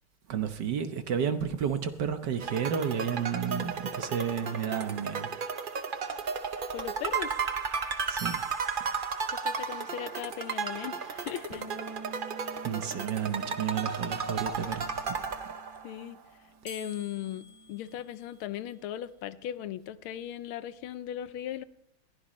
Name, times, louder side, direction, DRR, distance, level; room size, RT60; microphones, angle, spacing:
voice 1, 0.3-5.3 8.1-8.4 12.6-15.2, right 7 dB, 60° right, 1.5 m, -31 dB
sound 1, 1.6-2.9 8.2-9.7 16.7-18.8, left 1 dB, 5° left, 3.5 m, -50 dB
sound 2, 2.4-16.0, right 5 dB, 80° right, 0.4 m, -34 dB
voice 2, 6.7-7.3 9.3-11.6 15.8-16.2 16.6-21.6, left 11 dB, 80° left, 1.5 m, -38 dB
sound 3, 11.5-17.8, right 2 dB, 25° left, 2.7 m, -49 dB
21.5 x 15.5 x 3.1 m
omnidirectional pair, 2.3 m